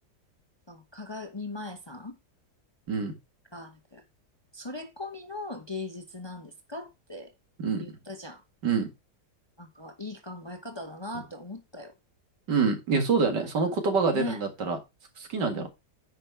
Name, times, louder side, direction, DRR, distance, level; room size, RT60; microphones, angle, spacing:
voice 1, 0.7-2.2 3.5-4.0 4.5-7.3 7.8-8.4 9.6-11.9 14.1-14.4 15.5-15.7, left 2 dB, 20° left, 0.9 m, -39 dB
voice 2, 12.5-14.8 15.2-15.7, right 5 dB, 80° right, 2.6 m, -26 dB
9.8 x 5.1 x 4.6 m
omnidirectional pair, 1.8 m